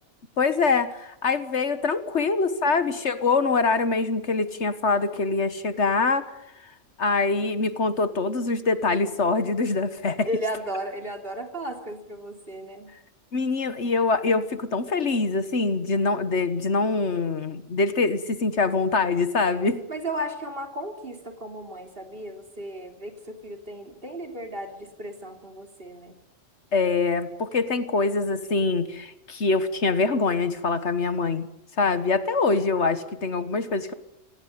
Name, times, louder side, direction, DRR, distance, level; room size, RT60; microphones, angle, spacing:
voice 1, 0.4-6.3 7.0-10.3 13.3-19.8 26.7-31.5 31.8-33.9, left 4 dB, 60° left, 12 dB, 1.6 m, -24 dB
voice 2, 10.3-12.9 19.9-26.2, equal, 45° right, 5 dB, 3.5 m, -35 dB
26.5 x 18.5 x 9.4 m, 0.87 s
omnidirectional pair, 1.3 m